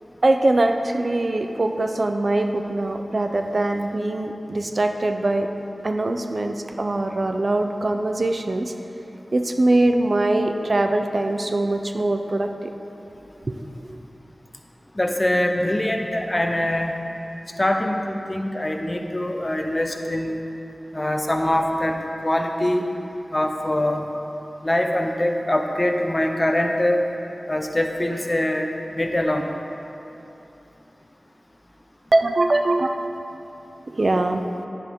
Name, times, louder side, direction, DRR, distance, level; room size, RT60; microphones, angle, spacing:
voice 1, 0.2-5.5 5.8-8.7 9.3-12.7 13.5-13.6 13.9-14.0 32.1-32.9 33.9-34.4, right 2 dB, 60° right, 5 dB, 0.6 m, -22 dB
voice 2, 15.0-16.9 17.6-20.4 20.9-22.0 22.2-22.9 23.3-24.1 24.6-27.0 27.5-29.5, left 1 dB, 30° left, 4 dB, 0.9 m, -23 dB
10.5 x 10.0 x 3.7 m, 2.9 s
cardioid pair, 40°, 0 cm